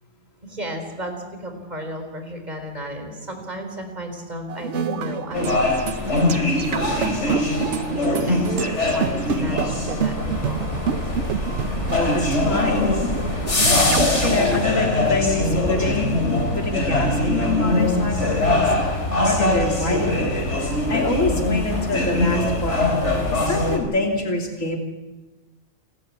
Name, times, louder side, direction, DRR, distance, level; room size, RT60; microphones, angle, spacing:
voice 1, 0.4-5.8 6.3-6.4 7.2-7.5 7.8-10.7, right 1 dB, 35° right, 4 dB, 4.0 m, -33 dB
sound 1, 4.5-14.6, right 7 dB, 65° right, 1.2 m, -29 dB
sound 2, 5.3-23.8, left 2 dB, 60° left, 4.1 m, -22 dB
voice 2, 11.9-13.1 13.5-16.2 16.5-20.3 20.6-22.9 23.3-24.8, left 3 dB, 80° left, 1 dB, 3.3 m, -26 dB
29.0 x 12.5 x 8.5 m, 1.2 s
omnidirectional pair, 1.3 m